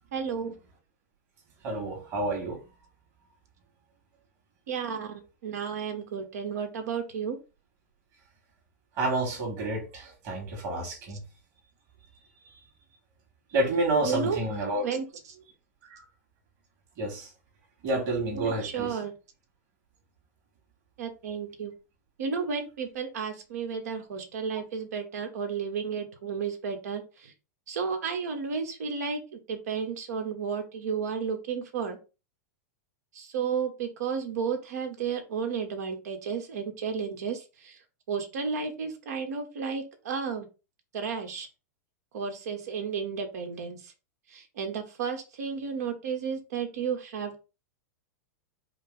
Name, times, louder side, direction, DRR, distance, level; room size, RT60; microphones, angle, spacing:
voice 1, 0.1-0.5 4.7-7.4 14.0-14.4 14.8-15.0 18.3-19.1 21.0-21.7 22.2-27.3 27.7-32.0 33.1-37.8 38.1-40.5 40.9-41.5 42.1-43.9 44.3-47.4, right 6 dB, 75° right, 1.2 m, -32 dB
voice 2, 1.6-2.6 9.0-11.2 12.5-12.6 13.5-14.8 15.9-16.0 17.0-17.3 17.8-18.9, right 2 dB, 40° right, 2.1 m, -29 dB
5.0 x 2.0 x 3.8 m
hypercardioid pair, 135°, 9 cm